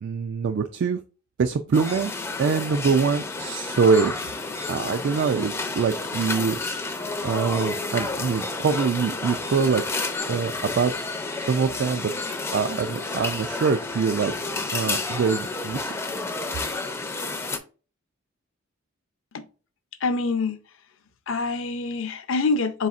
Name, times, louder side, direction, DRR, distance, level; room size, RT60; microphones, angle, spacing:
voice 1, 0.0-1.0 1.4-2.1 2.4-4.1 4.7-6.6 7.2-10.0 10.3-10.9 11.4-12.1 12.5-14.5 14.7-16.1, right 5 dB, 55° right, 0.3 m, -24 dB
sound 1, 1.7-17.6, left 3 dB, 10° left, 0.4 m, -30 dB
voice 2, 20.0-20.6 21.3-22.9, left 3 dB, 60° left, 0.5 m, -25 dB
4.1 x 4.0 x 2.4 m
head